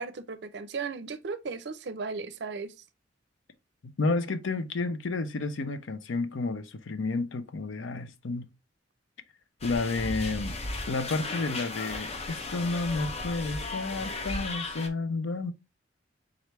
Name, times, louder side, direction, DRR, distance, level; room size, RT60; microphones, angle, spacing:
voice 1, 0.0-2.7, right 4 dB, 60° right, 0.5 m, -36 dB
voice 2, 4.0-8.5 9.6-10.6 10.9-15.5, left 3 dB, 80° left, 0.6 m, -31 dB
sound 1, 9.6-14.9, left 2 dB, 30° left, 0.6 m, -35 dB
3.8 x 3.3 x 3.0 m
head